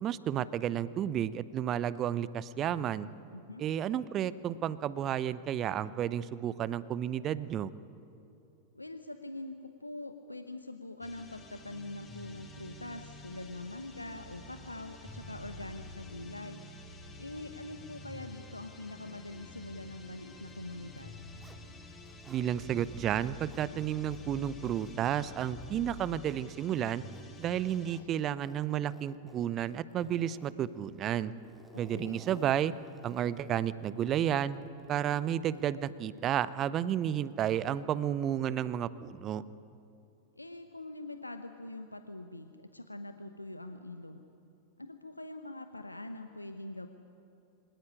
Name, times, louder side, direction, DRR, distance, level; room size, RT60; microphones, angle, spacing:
voice 1, 0.0-3.1 3.6-7.7 22.3-27.0 27.4-31.3 31.8-32.7 33.0-34.6 34.9-39.4, right 10 dB, 30° right, 17 dB, 0.7 m, -32 dB
voice 2, 3.3-3.6 8.7-16.6 17.2-21.2 31.7-32.2 40.4-44.2 44.8-46.9, left 2 dB, 85° left, 7 dB, 1.0 m, -44 dB
sound 1, 11.0-28.0, left 2 dB, 15° left, 4.1 m, -49 dB
Zipper (clothing), 21.0-22.5 22.8-36.6, right 1 dB, 5° right, 2.1 m, -57 dB
24.5 x 18.5 x 9.9 m, 2.7 s
figure-of-eight pair, 90°, 0 cm